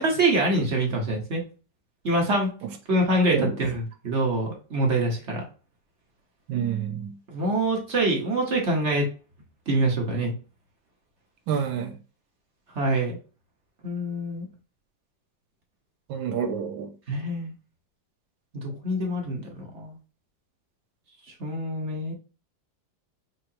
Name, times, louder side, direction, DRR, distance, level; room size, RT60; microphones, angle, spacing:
voice 1, 0.0-1.4 2.0-2.5 2.9-5.4 7.3-9.1 9.7-10.3 12.7-13.2 13.8-14.5 17.1-17.5 18.6-20.0 21.4-22.1, right 1 dB, 45° right, 1.2 m, -25 dB
voice 2, 6.5-7.2 11.5-12.0 16.1-16.9, right 8 dB, 90° right, 1.4 m, -28 dB
5.7 x 3.1 x 2.8 m
omnidirectional pair, 2.0 m